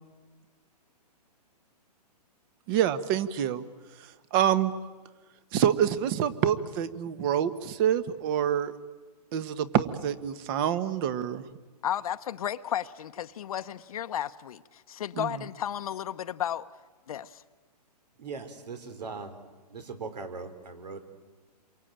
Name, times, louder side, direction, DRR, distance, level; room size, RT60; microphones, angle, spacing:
voice 1, 2.7-3.6 4.3-4.7 5.5-8.7 9.3-11.4 15.2-15.3, right 9 dB, 35° right, 1.3 m, -26 dB
voice 2, 11.8-16.7 17.1-17.4, left 10 dB, 60° left, 0.9 m, -33 dB
voice 3, 18.2-19.4 19.7-21.0, right 4 dB, 80° right, 3.9 m, -39 dB
28.0 x 23.5 x 8.9 m
hypercardioid pair, 150°, 21 cm